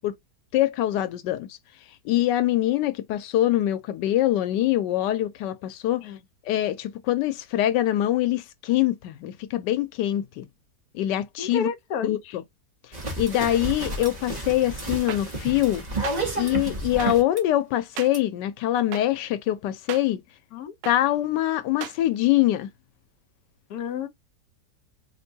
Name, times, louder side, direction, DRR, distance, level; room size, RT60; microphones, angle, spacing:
voice 1, 0.5-1.6 2.0-6.0 6.5-10.5 10.9-11.7 12.0-12.4 13.2-15.8 16.4-20.2 20.9-22.7, left 13 dB, 90° left, 1.3 m, -24 dB
voice 2, 11.4-12.3 20.5-20.7 23.7-24.1, left 6 dB, 65° left, 1.2 m, -31 dB
sound 1, 12.9-17.4 18.1-18.2, right 2 dB, 25° right, 1.4 m, -31 dB
sound 2, 15.1-15.2 16.0-16.2 17.0-17.1 18.0-18.1 18.9-19.0 19.9-20.0 20.8-21.0 21.8-22.0, right 11 dB, 85° right, 1.3 m, -34 dB
4.4 x 3.4 x 2.7 m
omnidirectional pair, 1.8 m